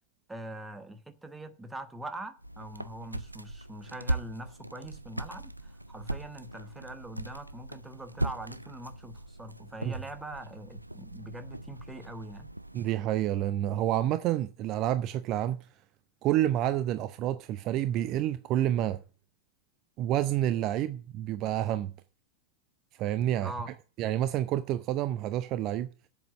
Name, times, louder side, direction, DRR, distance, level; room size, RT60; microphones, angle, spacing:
voice 1, 0.3-12.5 23.4-23.7, right 1 dB, 10° right, 1.3 m, -43 dB
sound 1, 2.4-12.9, right 1 dB, 85° right, 0.5 m, -39 dB
voice 2, 12.7-15.6 16.2-19.0 20.0-21.9 23.0-23.5 24.0-25.9, right 12 dB, 40° right, 0.6 m, -28 dB
7.7 x 7.7 x 8.2 m
figure-of-eight pair, 90°, 0 cm